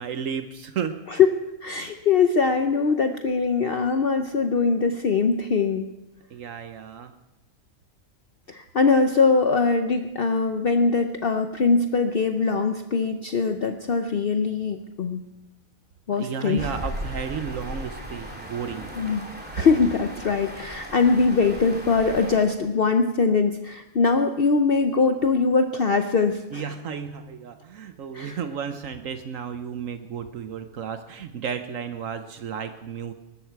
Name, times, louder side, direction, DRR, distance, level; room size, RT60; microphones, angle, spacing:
voice 1, 0.0-1.0 6.3-7.1 16.2-18.9 26.5-33.1, right 7 dB, 75° right, 9 dB, 1.2 m, -33 dB
voice 2, 1.6-5.9 8.5-15.2 16.1-16.7 18.9-19.2 19.5-26.6 28.1-28.4, left 4 dB, 50° left, 7 dB, 0.9 m, -22 dB
sound 1, 16.6-22.4, equal, 5° right, 2.7 m, -37 dB
20.5 x 13.0 x 4.7 m, 0.97 s
omnidirectional pair, 1.4 m